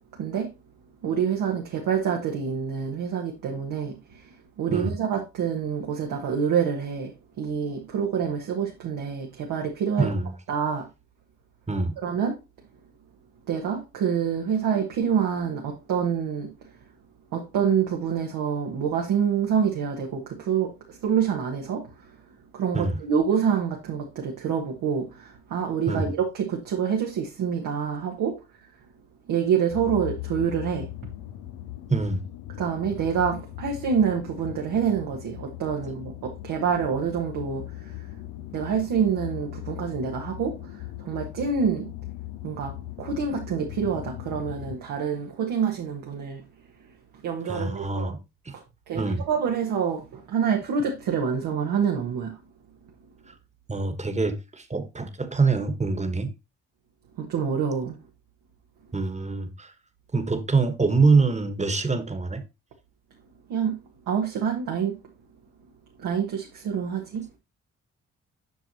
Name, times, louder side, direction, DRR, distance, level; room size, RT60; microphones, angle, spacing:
voice 1, 0.2-0.5 1.0-4.3 4.6-10.1 10.5-10.9 12.0-12.4 13.5-16.5 17.3-21.9 22.5-28.4 29.3-30.9 32.6-38.0 38.5-41.9 42.4-46.4 47.2-48.1 48.5-52.4 57.2-58.0 63.5-63.8 64.1-64.9 66.0-67.2, right 7 dB, 80° right, 1.3 m, -27 dB
voice 2, 10.0-10.3 11.7-12.0 22.7-23.0 25.9-26.1 31.9-32.2 47.5-48.2 48.4-48.5 48.9-49.3 53.7-56.3 58.9-59.7 60.1-62.4, right 4 dB, 20° right, 1.4 m, -25 dB
sound 1, 29.7-44.8, left 16 dB, 75° left, 0.6 m, -39 dB
8.1 x 6.0 x 2.9 m
hypercardioid pair, 45°, 33 cm